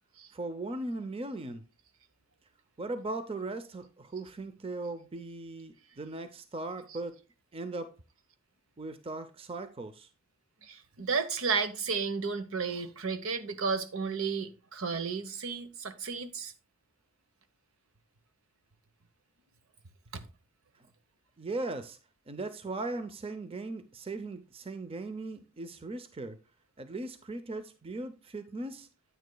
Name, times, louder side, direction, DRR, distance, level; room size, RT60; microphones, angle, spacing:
voice 1, 0.3-1.6 2.8-7.2 7.5-7.9 8.8-10.1 20.7-20.9 21.4-22.0 22.3-26.4 26.8-28.9, right 2 dB, 25° right, 0.5 m, -38 dB
voice 2, 10.6-16.5 20.1-20.2, right 5 dB, 65° right, 0.9 m, -33 dB
9.5 x 9.1 x 2.2 m
head